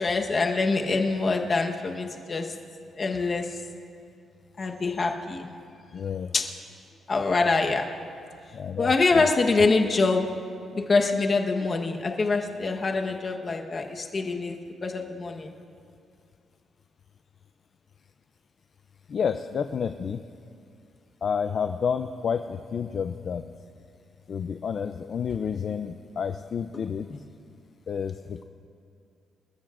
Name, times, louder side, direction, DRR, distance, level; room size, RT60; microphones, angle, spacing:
voice 1, 0.0-2.6 3.0-3.6 4.6-5.6 6.3-6.5 7.1-7.9 8.8-10.3 10.7-14.6 14.8-15.5, left 3 dB, 30° left, 3 dB, 1.1 m, -25 dB
voice 2, 5.9-6.3 8.5-9.2 19.1-20.2 21.2-23.5 24.3-27.1 27.9-28.4, left 7 dB, 50° left, 8 dB, 0.4 m, -30 dB
27.0 x 13.5 x 2.5 m, 2.5 s
cardioid pair, 135°, 0 cm